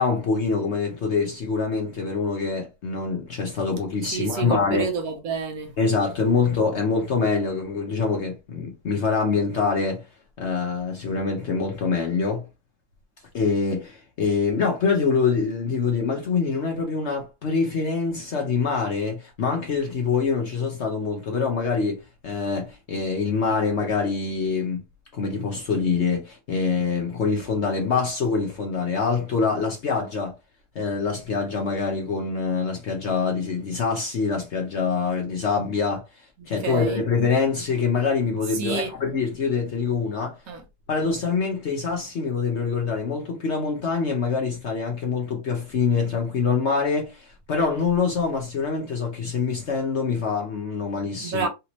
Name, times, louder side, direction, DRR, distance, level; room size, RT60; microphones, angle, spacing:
voice 1, 0.0-4.8 5.8-10.1 10.4-12.5 13.3-24.8 25.1-30.3 30.7-36.0 36.5-40.4 40.9-51.5, left 5 dB, 55° left, 0.8 m, -25 dB
voice 2, 4.1-5.7 36.6-37.0 38.5-38.9 40.5-40.6 51.2-51.5, right 5 dB, 65° right, 1.0 m, -28 dB
3.3 x 2.7 x 3.0 m
omnidirectional pair, 1.8 m